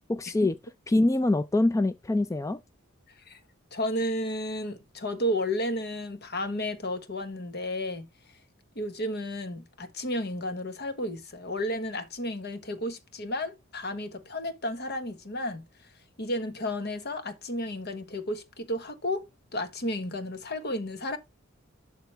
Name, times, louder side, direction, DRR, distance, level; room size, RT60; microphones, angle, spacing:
voice 1, 0.1-0.6 0.9-2.6, left 2 dB, 15° left, 0.3 m, -24 dB
voice 2, 3.7-8.1 8.7-15.7 16.2-21.2, left 1 dB, 55° left, 1.3 m, -32 dB
11.5 x 4.0 x 3.4 m
head